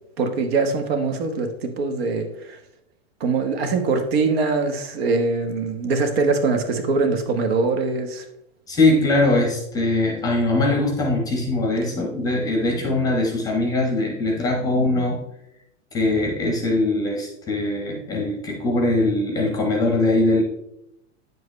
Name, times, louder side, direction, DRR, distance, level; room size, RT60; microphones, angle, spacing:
voice 1, 0.2-2.6 3.2-8.2, right 4 dB, 55° right, 6 dB, 1.3 m, -23 dB
voice 2, 8.7-15.3 15.9-20.4, left 2 dB, 10° left, 2 dB, 0.9 m, -21 dB
9.4 x 7.6 x 3.2 m, 0.82 s
supercardioid pair, 175°, 36 cm